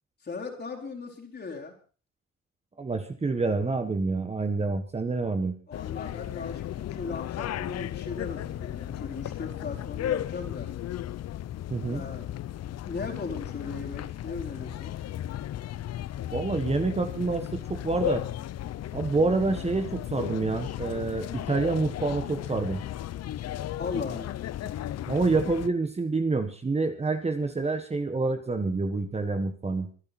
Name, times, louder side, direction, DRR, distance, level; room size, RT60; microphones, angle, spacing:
voice 1, 0.2-1.7 5.7-10.7 11.9-12.3 12.8-14.9 23.8-24.4, left 4 dB, 35° left, 0 dB, 4.6 m, -38 dB
voice 2, 2.8-5.5 11.7-12.0 16.3-18.2 18.9-22.8 25.1-29.9, right 3 dB, 20° right, 7 dB, 1.5 m, -27 dB
sound 1, 5.7-25.7, left 12 dB, 55° left, 0.7 m, -35 dB
24.5 x 10.5 x 4.3 m, 0.38 s
cardioid pair, 120°, 31 cm